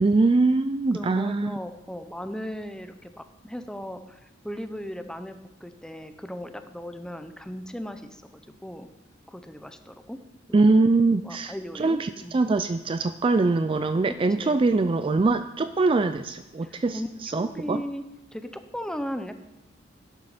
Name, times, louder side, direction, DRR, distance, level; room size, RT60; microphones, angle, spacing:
voice 1, 0.0-1.6 10.5-17.8, right 3 dB, 25° right, 11 dB, 0.3 m, -23 dB
voice 2, 0.9-5.4 5.6-8.2 8.6-8.9 9.3-10.2 10.5-10.8 11.2-12.4 14.1-14.6 16.6-18.0 18.3-19.4, equal, 5° left, 8 dB, 0.8 m, -37 dB
12.0 x 11.5 x 5.0 m, 0.98 s
head